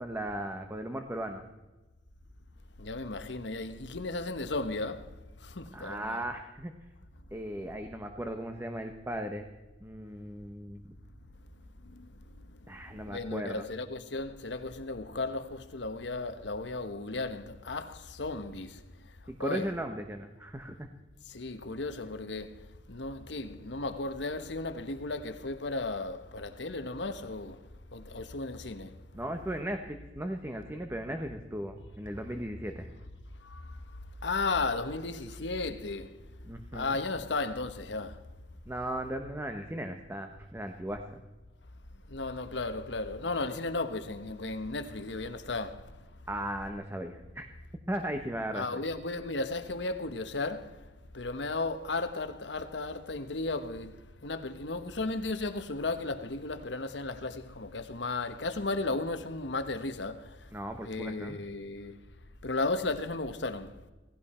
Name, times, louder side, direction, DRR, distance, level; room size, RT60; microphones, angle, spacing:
voice 1, 0.0-1.4 5.7-6.7 7.3-9.5 9.8-10.8 12.7-13.6 19.3-20.9 29.1-32.9 36.4-37.0 38.7-41.2 46.3-47.5 47.9-48.8 60.5-61.4, right 1 dB, 15° right, 1.0 m, -37 dB
voice 2, 2.8-6.2 11.8-12.1 13.0-18.8 19.4-19.7 21.3-27.6 27.9-28.9 33.4-33.8 34.2-36.2 36.7-38.2 42.1-46.0 48.5-50.9 51.1-60.5 60.8-62.0 62.4-63.7, left 3 dB, 70° left, 1.2 m, -35 dB
17.5 x 16.5 x 4.4 m
head